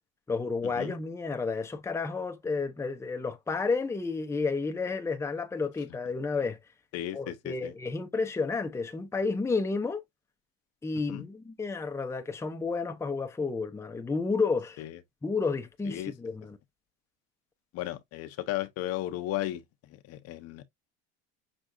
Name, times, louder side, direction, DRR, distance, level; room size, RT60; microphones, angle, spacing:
voice 1, 0.3-6.6 7.1-10.0 10.8-14.8 15.2-16.6, left 4 dB, 10° left, 0.7 m, -31 dB
voice 2, 6.9-7.7 11.1-11.2 14.8-14.9 15.9-16.1 17.7-19.6 19.9-20.7, left 14 dB, 55° left, 0.8 m, -35 dB
6.3 x 3.4 x 2.5 m
supercardioid pair, 110°, 29 cm